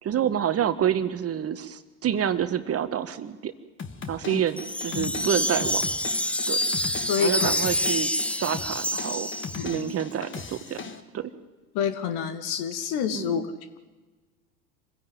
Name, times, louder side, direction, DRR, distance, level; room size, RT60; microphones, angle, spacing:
voice 1, 0.0-3.5 4.1-5.8 6.5-6.6 7.2-9.3 9.6-11.3 13.1-13.5, right 9 dB, 30° right, 11 dB, 1.5 m, -28 dB
sound 1, 3.8-11.0, left 5 dB, 25° left, 2.0 m, -39 dB
Wind chime, 4.6-9.9, left 1 dB, 5° left, 0.8 m, -27 dB
voice 2, 7.1-7.5 9.6-9.9 11.7-13.5, left 8 dB, 55° left, 11 dB, 2.5 m, -28 dB
26.5 x 16.0 x 9.5 m, 1.2 s
hypercardioid pair, 85°, 46 cm